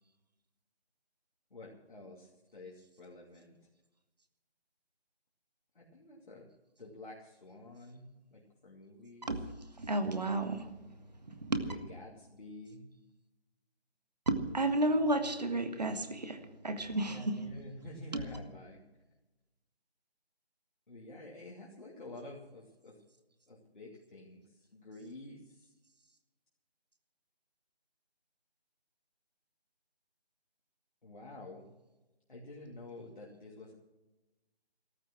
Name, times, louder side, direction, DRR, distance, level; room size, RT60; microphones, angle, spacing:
voice 1, 1.5-3.5 5.9-6.5 6.8-8.0 8.3-9.3 11.7-12.8 17.1-18.8 20.9-23.0 23.5-24.4 24.7-25.4 31.0-31.7 32.3-33.7, left 2 dB, 50° left, -3 dB, 2.8 m, -49 dB
voice 2, 9.8-10.7 11.4-11.7 14.3-17.4 18.1-18.2, right 1 dB, 40° right, 8 dB, 1.7 m, -32 dB
14.0 x 13.5 x 6.1 m, 1.0 s
figure-of-eight pair, 170°, 32 cm